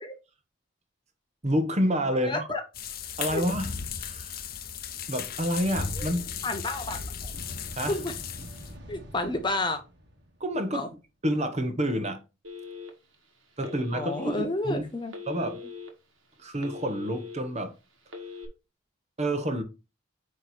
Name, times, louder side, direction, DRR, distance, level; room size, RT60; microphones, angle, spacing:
voice 1, 1.4-2.5 3.2-3.7 4.0-4.4 5.1-6.3 7.7-8.0 10.4-10.9 11.2-12.2 13.6-14.8 15.3-15.6 16.4-17.7 19.2-19.6, equal, 35° right, 1.1 m, -28 dB
voice 2, 2.2-2.6 3.3-3.5 6.0-6.1 6.4-7.3 7.9-8.1 8.9-9.8 10.7-10.9 13.9-15.1, left 2 dB, 25° left, 1.0 m, -30 dB
sound 1, 2.7-8.7, left 6 dB, 50° left, 0.8 m, -36 dB
sound 2, 7.3-10.8, equal, 60° right, 1.6 m, -46 dB
Telephone, 12.4-13.1 13.6-14.4 15.1-15.9 16.3-17.4 18.0-18.5, left 5 dB, 80° right, 2.0 m, -41 dB
9.3 x 3.3 x 4.4 m
head